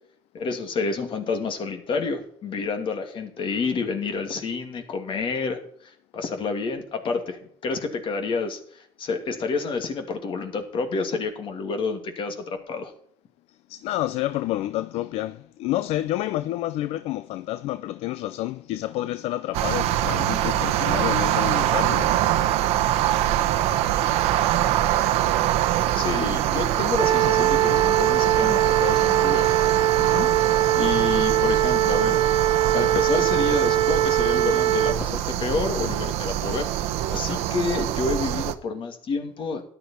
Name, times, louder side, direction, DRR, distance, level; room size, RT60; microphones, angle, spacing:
voice 1, 0.3-5.6 6.1-12.9 25.9-29.6 29.9-30.3 30.8-39.6, left 4 dB, 55° left, 2.6 m, -29 dB
voice 2, 13.7-22.2, left 14 dB, 75° left, 0.5 m, -29 dB
sound 1, 19.5-38.5, right 12 dB, 85° right, 0.9 m, -24 dB
sound 2, 27.0-34.9, right 12 dB, 50° right, 0.9 m, -21 dB
13.5 x 10.5 x 4.5 m
cardioid pair, 90°, 10 cm